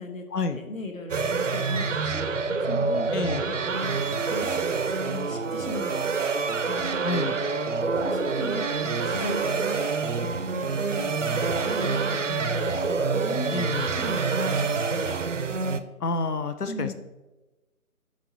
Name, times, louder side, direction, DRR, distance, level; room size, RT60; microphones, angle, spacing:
voice 1, 0.5-3.1 3.4-6.0 6.7-7.0 7.4-7.5 8.0-11.4 11.6-13.7 13.9-15.2 16.7-16.9, left 2 dB, 60° left, 4 dB, 1.3 m, -38 dB
sound 1, 1.1-15.8, right 4 dB, 55° right, 0.5 m, -27 dB
Bowed string instrument, 2.1-6.6, right 1 dB, 45° left, 1.9 m, -54 dB
voice 2, 3.1-3.4 7.0-7.4 13.5-13.9 16.0-16.9, left 3 dB, 80° left, 9 dB, 0.8 m, -28 dB
7.3 x 4.4 x 4.0 m, 1.1 s
figure-of-eight pair, 155°, 45 cm